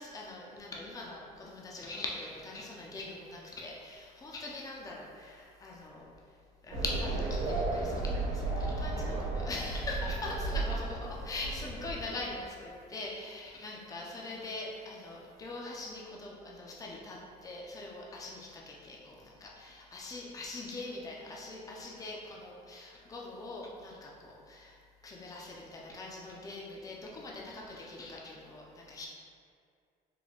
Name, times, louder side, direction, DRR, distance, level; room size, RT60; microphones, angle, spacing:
voice 1, 0.0-6.0 6.6-24.8 25.0-29.1, left 2 dB, 20° left, -3 dB, 0.5 m, -42 dB
sound 1, 6.7-12.4, right 2 dB, 75° right, 0.9 m, -34 dB
3.8 x 2.2 x 3.3 m, 2.2 s
cardioid pair, 110°, 17 cm